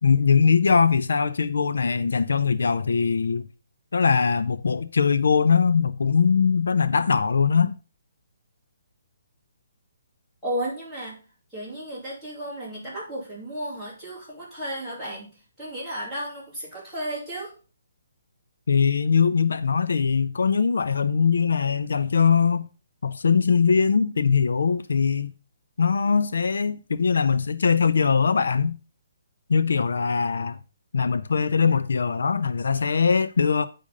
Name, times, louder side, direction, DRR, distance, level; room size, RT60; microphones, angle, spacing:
voice 1, 0.0-3.5 3.9-7.7 18.7-22.7 23.0-25.3 25.8-28.8 29.5-30.6 30.9-33.7, left 5 dB, 80° left, 0.5 m, -21 dB
voice 2, 10.4-11.2 11.5-15.3 15.6-16.4 16.7-17.5, right 1 dB, 5° left, 3.2 m, -33 dB
8.6 x 5.1 x 5.2 m
hypercardioid pair, 175°, 0 cm